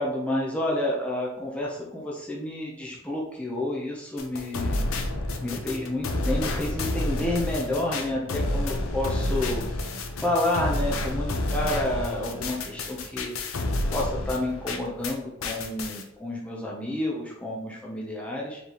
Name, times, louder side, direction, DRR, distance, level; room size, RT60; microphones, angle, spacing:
voice 1, 0.0-5.1 5.4-9.9 10.2-13.3 13.9-18.6, left 1 dB, 5° left, -3 dB, 0.7 m, -30 dB
sound 1, 4.2-15.1 15.4-16.0, left 2 dB, 85° left, 0.6 m, -30 dB
4.7 x 3.3 x 2.9 m, 0.82 s
head